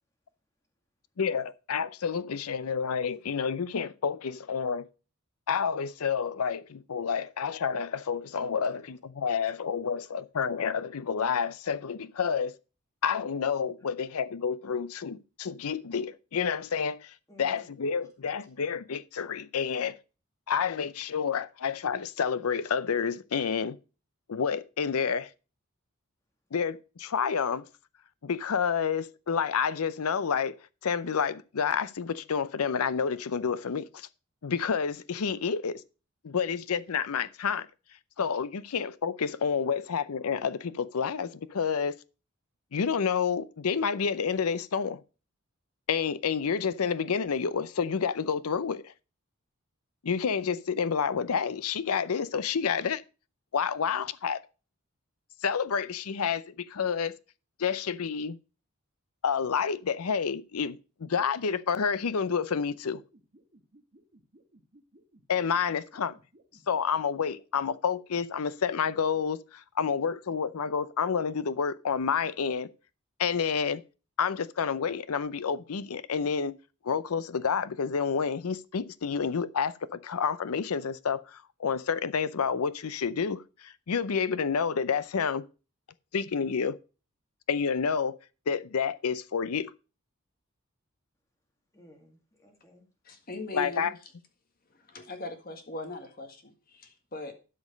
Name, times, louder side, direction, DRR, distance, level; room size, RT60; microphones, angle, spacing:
voice 1, 1.2-4.9 5.5-12.6 13.0-20.0 20.5-23.8 24.3-25.3 26.5-27.6 28.2-30.6 30.8-34.1 34.4-35.8 36.2-37.7 38.2-42.0 42.7-45.0 45.9-48.9 50.0-53.0 53.5-54.4 55.4-57.1 57.6-58.4 59.2-63.0 65.3-66.2 66.7-72.7 73.2-73.8 74.2-76.5 76.8-85.4 86.1-86.8 87.5-88.1 88.5-89.7 93.5-93.9, left 6 dB, 90° left, 0.6 m, -29 dB
voice 2, 17.3-17.9 39.7-39.8 91.7-92.9, left 1 dB, 15° left, 2.3 m, -57 dB
sound 1, 62.7-68.2, right 1 dB, 40° right, 2.1 m, -59 dB
voice 3, 93.0-93.9 94.7-97.3, left 2 dB, 45° left, 1.8 m, -40 dB
12.0 x 5.2 x 5.2 m
head